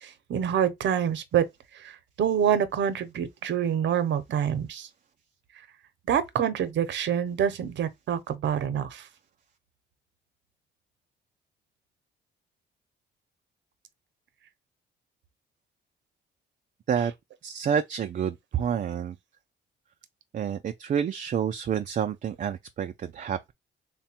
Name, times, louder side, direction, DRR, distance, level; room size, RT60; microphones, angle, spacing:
voice 1, 0.0-1.5 1.7-4.9 6.1-9.1, right 8 dB, 65° right, 0.8 m, -26 dB
voice 2, 17.4-19.2 20.3-23.5, right 8 dB, 40° right, 0.4 m, -29 dB
3.3 x 2.2 x 4.3 m
cardioid pair, 90°, 20 cm